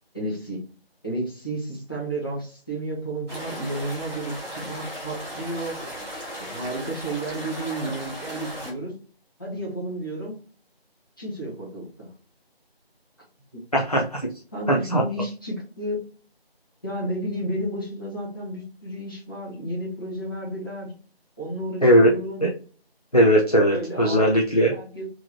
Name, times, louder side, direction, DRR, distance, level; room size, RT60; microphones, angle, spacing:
voice 1, 0.1-0.6 1.0-5.8 6.4-8.9 9.4-10.4 11.2-12.1 13.5-13.6 14.5-16.0 16.8-20.9 21.4-22.5 23.7-24.3 24.7-25.1, right 1 dB, 20° left, -6 dB, 1.1 m, -32 dB
sound 1, 3.3-8.7, equal, 25° right, 2.0 m, -36 dB
voice 2, 13.7-14.3 14.7-15.0 21.8-22.1 22.4-22.5 23.1-24.7, equal, 40° left, -1 dB, 0.5 m, -18 dB
4.7 x 3.0 x 2.7 m, 0.40 s
figure-of-eight pair, 170°, 31 cm